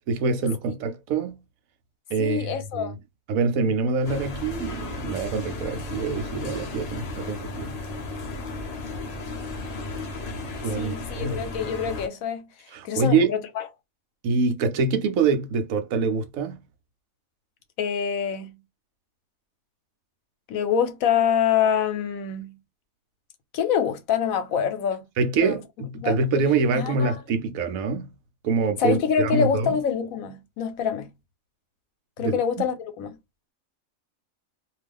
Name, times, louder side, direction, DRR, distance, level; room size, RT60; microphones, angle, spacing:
voice 1, 0.1-1.4 2.1-3.0 3.3-7.8 10.6-11.4 12.7-13.3 14.2-16.6 25.2-28.1 28.4-29.8 32.2-32.4, right 4 dB, 80° right, 1.1 m, -25 dB
voice 2, 2.2-3.0 10.7-12.5 12.8-13.6 17.8-18.6 20.5-22.6 23.5-25.0 25.4-25.6 26.0-26.2 26.7-27.2 28.8-31.1 32.2-33.2, left 7 dB, 80° left, 1.1 m, -25 dB
sound 1, 4.0-12.1, left 2 dB, 40° left, 0.6 m, -34 dB
2.6 x 2.4 x 3.4 m
omnidirectional pair, 1.4 m